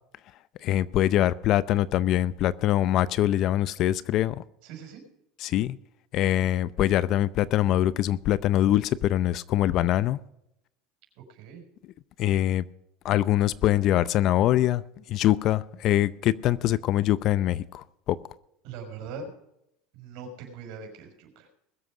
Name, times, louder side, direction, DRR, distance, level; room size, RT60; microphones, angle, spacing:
voice 1, 0.6-4.4 5.4-5.8 6.1-10.2 12.2-12.6 13.0-14.8 15.1-18.2, left 13 dB, 45° left, 18 dB, 0.6 m, -23 dB
voice 2, 4.6-5.0 11.2-11.6 18.6-19.3 19.9-21.5, right 5 dB, 65° right, 3 dB, 5.7 m, -41 dB
21.0 x 7.9 x 4.9 m, 0.81 s
supercardioid pair, 130°, 0 cm